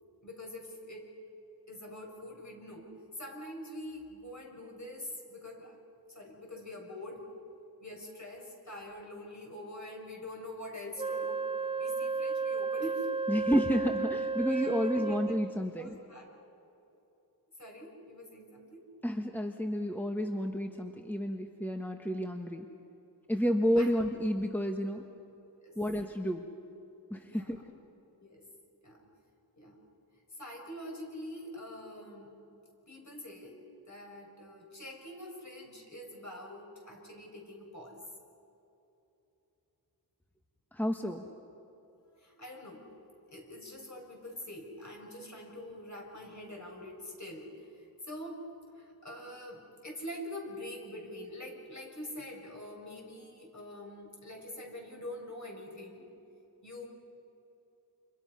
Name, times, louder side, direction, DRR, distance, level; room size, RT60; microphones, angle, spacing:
voice 1, 0.2-1.1 1.7-5.7 6.1-7.3 7.8-11.4 11.8-13.1 14.5-15.2 15.7-16.3 17.6-18.9 23.8-23.9 25.6-25.8 27.2-27.5 28.2-28.5 28.8-29.1 29.6-29.8 30.3-32.3 32.9-33.5 33.9-38.0 42.1-42.9 43.3-48.4 48.7-56.0 56.6-56.9, left 1 dB, 45° left, 0 dB, 6.7 m, -45 dB
Wind instrument woodwind instrument, 11.0-15.6, right 4 dB, 15° right, 0.5 m, -33 dB
voice 2, 13.3-15.9 19.0-22.7 23.3-25.0 25.8-26.4 27.1-27.6 40.7-41.2, equal, 5° left, 3 dB, 1.4 m, -30 dB
30.0 x 28.0 x 5.7 m, 2.9 s
wide cardioid pair, 90°, 38 cm